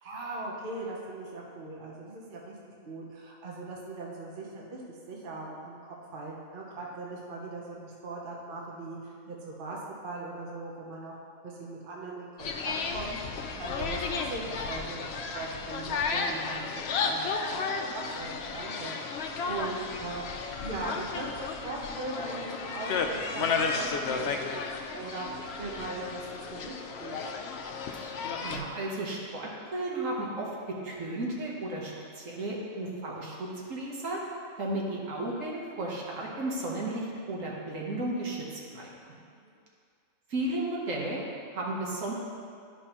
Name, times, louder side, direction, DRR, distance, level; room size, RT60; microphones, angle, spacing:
voice 1, 0.0-2.5 2.9-4.8 5.1-11.1 11.4-13.1 13.6-20.2 20.6-24.6 24.9-27.2 39.3-39.5, right 2 dB, 45° right, -3 dB, 1.0 m, -40 dB
sound 1, 12.4-28.6, left 4 dB, 65° left, 0.7 m, -33 dB
voice 2, 28.4-34.2 34.6-38.9 40.3-41.2 41.5-42.1, right 2 dB, 65° right, -3 dB, 1.5 m, -34 dB
11.5 x 5.2 x 2.9 m, 2.3 s
omnidirectional pair, 1.4 m